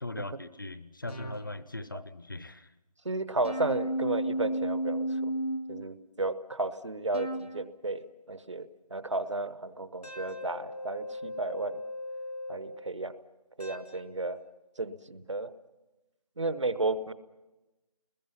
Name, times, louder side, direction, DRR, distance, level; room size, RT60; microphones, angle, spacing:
voice 1, 0.0-2.7, left 2 dB, 35° left, 15 dB, 0.7 m, -39 dB
sound 1, 1.1-1.6 3.4-5.9 7.1-7.7 10.0-12.8 13.6-14.1, right 1 dB, 90° left, 2.8 m, -35 dB
voice 2, 3.0-5.3 5.7-11.8 12.5-13.1 13.6-14.4 14.8-15.5 16.4-17.1, right 2 dB, 50° right, 14 dB, 1.0 m, -33 dB
30.0 x 21.0 x 5.7 m, 1.0 s
figure-of-eight pair, 175°, 20 cm